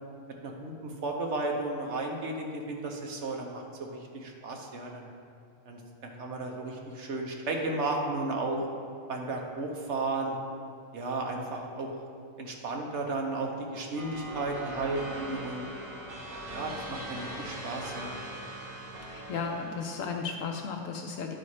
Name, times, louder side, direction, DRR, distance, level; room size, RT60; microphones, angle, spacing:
voice 1, 0.4-5.1 5.7-8.6 9.1-10.4 10.9-11.9 12.4-15.7 16.5-18.1, right 2 dB, 60° right, 1 dB, 1.2 m, -34 dB
sound 1, 14.0-20.2, right 1 dB, 85° right, 1.6 m, -41 dB
voice 2, 19.0-21.3, left 5 dB, 80° left, 3 dB, 1.0 m, -35 dB
10.0 x 4.2 x 4.9 m, 2.4 s
omnidirectional pair, 1.4 m